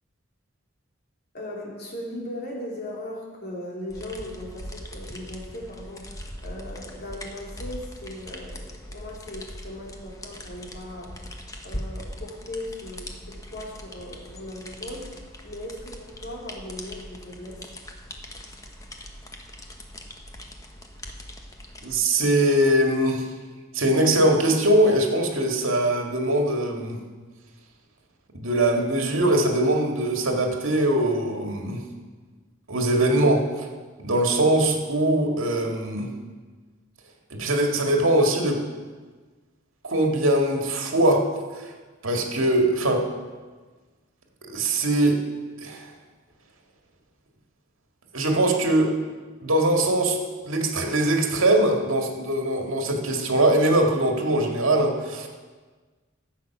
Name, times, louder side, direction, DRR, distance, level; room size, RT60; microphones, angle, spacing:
voice 1, 1.3-11.2 11.6-15.1 15.4-17.6, left 1 dB, 50° left, -2 dB, 3.1 m, -38 dB
sound 1, 3.9-22.0, left 1 dB, 15° left, 1.1 m, -41 dB
voice 2, 21.8-23.3 23.7-27.0 28.4-31.8 32.7-33.7 34.0-36.1 37.3-38.6 39.8-41.2 41.6-41.7 42.0-43.0 44.5-45.2 45.6-45.9 48.1-48.9 49.4-50.2 50.4-55.3, right 1 dB, 80° right, 2 dB, 2.0 m, -22 dB
14.0 x 8.1 x 6.0 m, 1.4 s
head